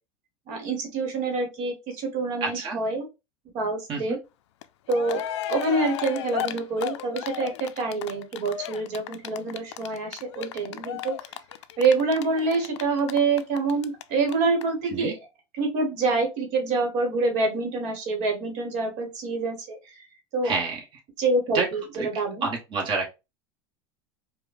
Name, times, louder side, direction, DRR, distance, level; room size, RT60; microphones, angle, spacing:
voice 1, 0.5-3.0 3.5-4.2 4.9-5.2 5.5-11.2 11.8-15.1 15.6-20.0 20.3-20.5 21.2-22.5, right 3 dB, 60° right, 4 dB, 1.3 m, -26 dB
voice 2, 2.4-2.8 3.9-4.2 14.9-15.2 20.4-20.8 21.5-21.7 21.9-23.1, right 4 dB, 35° right, 0 dB, 1.2 m, -28 dB
Cheering, 4.6-4.7 4.9-14.0 14.3-14.4 14.6-14.7, left 11 dB, 90° left, 0.4 m, -34 dB
4.8 x 2.2 x 2.5 m, 0.26 s
supercardioid pair, 115°, 14 cm